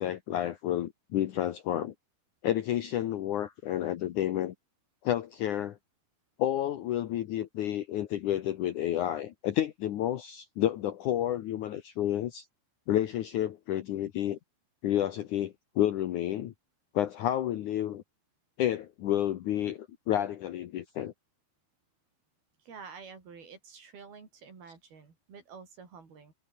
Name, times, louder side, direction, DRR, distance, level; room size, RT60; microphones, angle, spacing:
voice 1, 0.0-1.9 2.4-4.5 5.0-5.8 6.4-12.5 12.9-14.4 14.8-16.5 16.9-18.0 18.6-21.1, left 12 dB, 65° left, 2.3 m, -30 dB
voice 2, 22.6-26.3, right 5 dB, 75° right, 7.3 m, -49 dB
omnidirectional pair, 4.4 m